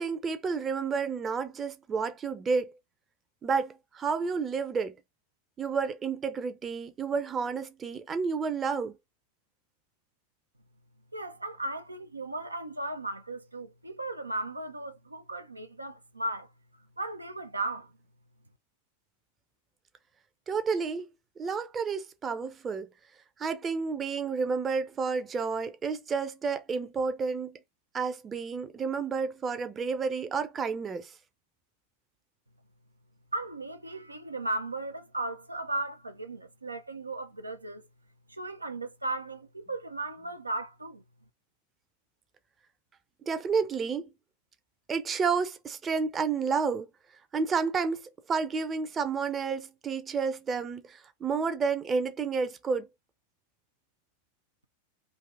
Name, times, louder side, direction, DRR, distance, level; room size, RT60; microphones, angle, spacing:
voice 1, 0.0-2.7 3.4-5.0 5.6-8.9 20.5-21.1 21.4-22.9 23.4-27.6 27.9-31.1 43.3-44.1 44.9-46.9 47.3-48.0 48.3-52.9, right 5 dB, 20° right, 0.6 m, -30 dB
voice 2, 11.1-16.5 17.0-17.9 33.3-37.9 38.3-41.0, right 2 dB, 80° right, 0.5 m, -36 dB
3.4 x 2.7 x 3.6 m
figure-of-eight pair, 90°, 0 cm